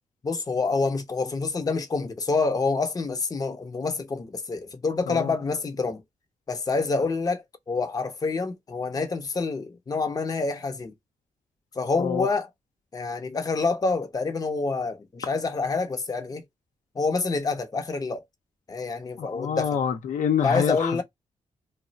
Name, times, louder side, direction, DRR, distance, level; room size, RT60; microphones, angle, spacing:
voice 1, 0.2-6.0 6.5-10.9 11.8-12.5 12.9-16.4 17.0-18.2 18.7-19.8 20.4-21.0, left 4 dB, 30° left, 0.6 m, -27 dB
voice 2, 19.2-21.0, left 7 dB, 80° left, 0.7 m, -26 dB
2.3 x 2.0 x 3.9 m
cardioid pair, 80°, 13 cm